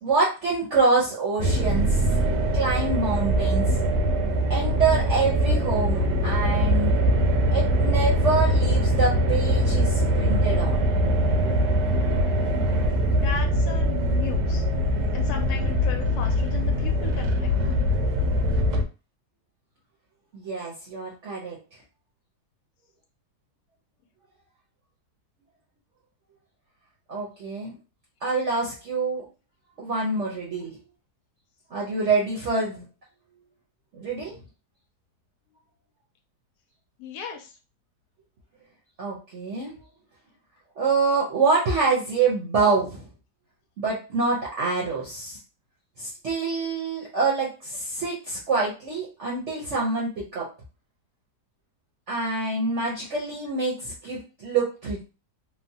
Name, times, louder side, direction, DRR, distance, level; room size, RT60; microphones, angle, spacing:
voice 1, 0.0-2.0 2.5-3.8 4.5-6.9 7.5-10.9 20.3-21.6 27.1-27.7 28.2-29.2 29.8-30.8 31.7-32.8 33.9-34.4 39.0-39.7 40.8-43.1 43.8-45.4 46.0-50.5 52.1-55.0, right 4 dB, 55° right, -4 dB, 0.8 m, -26 dB
sound 1, 1.4-18.8, equal, 85° right, 1.2 m, -22 dB
voice 2, 13.1-14.6 15.1-17.6 37.0-37.5, left 6 dB, 70° left, 4 dB, 1.1 m, -36 dB
3.2 x 2.0 x 2.7 m, 0.31 s
omnidirectional pair, 1.8 m